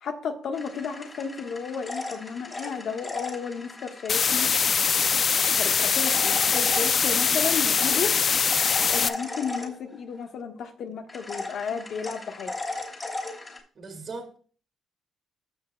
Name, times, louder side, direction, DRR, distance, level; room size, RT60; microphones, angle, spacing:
voice 1, 0.0-4.5 5.5-8.1 8.9-12.5, left 6 dB, 70° left, 5 dB, 1.3 m, -33 dB
sound 1, 0.5-4.3 5.6-10.2 11.1-13.6, left 2 dB, 30° left, 3.1 m, -37 dB
sound 2, 4.1-9.1, left 6 dB, 45° left, 0.4 m, -23 dB
voice 2, 13.8-14.4, right 3 dB, 50° right, 0 dB, 2.1 m, -38 dB
15.5 x 6.3 x 2.3 m, 0.43 s
cardioid pair, 90°, 0 cm